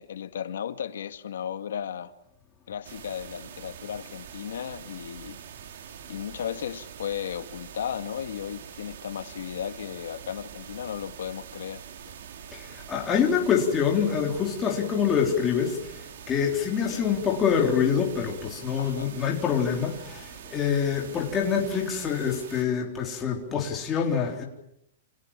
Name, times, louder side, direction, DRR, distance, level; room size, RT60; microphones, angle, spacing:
voice 1, 0.0-2.1 2.7-5.4 6.1-11.8 16.9-17.0 18.8-19.1, left 9 dB, 85° left, 1.9 m, -35 dB
sound 1, 2.8-22.6, right 8 dB, 60° right, 2.8 m, -44 dB
voice 2, 12.5-24.4, left 7 dB, 15° left, 3.8 m, -26 dB
29.5 x 26.5 x 7.4 m
supercardioid pair, 175°, 0 cm